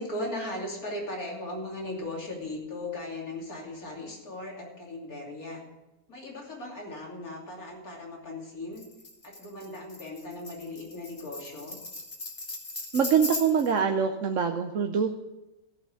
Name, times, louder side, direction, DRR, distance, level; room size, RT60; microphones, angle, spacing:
voice 1, 0.0-5.6 6.1-8.8 9.2-11.8, left 1 dB, 75° left, -2 dB, 3.4 m, -37 dB
Tambourine, 8.8-13.8, left 2 dB, 30° left, 1.4 m, -38 dB
voice 2, 12.9-15.2, right 7 dB, 60° right, 4 dB, 1.1 m, -24 dB
14.5 x 5.8 x 8.5 m, 0.99 s
omnidirectional pair, 1.6 m